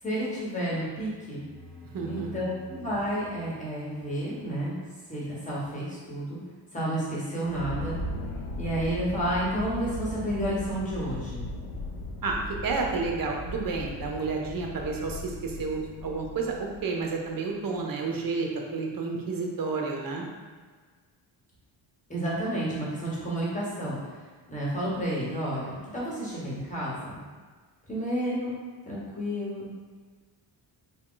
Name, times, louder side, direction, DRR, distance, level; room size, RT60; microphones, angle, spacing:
voice 1, 0.0-1.4 2.1-4.8 5.1-6.4 6.7-8.0 8.6-11.5 22.1-24.0 24.5-27.2 27.9-28.6 28.9-29.7, right 1 dB, 15° left, -7 dB, 1.3 m, -31 dB
sound 1, 1.2-4.7, left 2 dB, ahead, 1.0 m, -48 dB
voice 2, 1.9-2.3 12.2-20.2, right 4 dB, 50° right, 1 dB, 0.7 m, -31 dB
sound 2, 7.4-17.1, left 1 dB, 85° left, 0.7 m, -37 dB
3.7 x 2.3 x 3.8 m, 1.5 s
cardioid pair, 105°, 45 cm